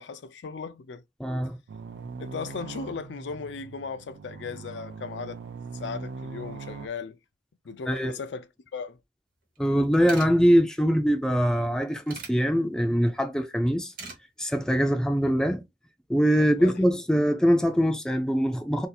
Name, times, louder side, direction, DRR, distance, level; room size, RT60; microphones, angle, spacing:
voice 1, 0.0-1.0 2.2-5.4 5.7-7.2 7.6-8.5 8.7-9.0 16.4-16.8, left 5 dB, 70° left, 0.4 m, -37 dB
voice 2, 1.2-1.6 7.9-8.2 9.6-13.9 14.4-15.6 16.1-18.9, equal, 5° left, 0.4 m, -23 dB
sound 1, 1.7-6.9, right 4 dB, 75° right, 0.4 m, -41 dB
sound 2, 9.6-9.7 9.8-10.3 11.5-12.3 13.7-14.2 14.6-14.8, right 3 dB, 50° right, 1.1 m, -41 dB
2.7 x 2.3 x 4.1 m
head